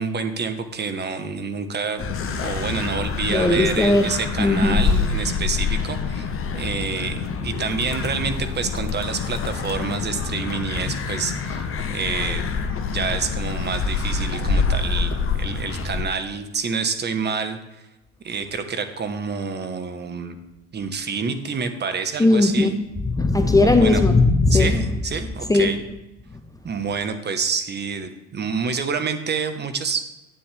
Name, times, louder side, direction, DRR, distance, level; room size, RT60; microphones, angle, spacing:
voice 1, 0.0-2.0 2.3-12.4 12.9-17.6 18.2-20.4 20.7-22.8 23.6-24.0 24.5-25.8 26.6-30.1, right 5 dB, 30° right, 1.3 m, -28 dB
sound 1, 2.0-16.0, left 5 dB, 40° left, 1.3 m, -26 dB
voice 2, 3.3-4.1 4.4-4.8 22.2-24.8 25.5-25.8, left 2 dB, 10° left, 0.8 m, -18 dB
12.5 x 9.4 x 3.5 m
hypercardioid pair, 75°, 32 cm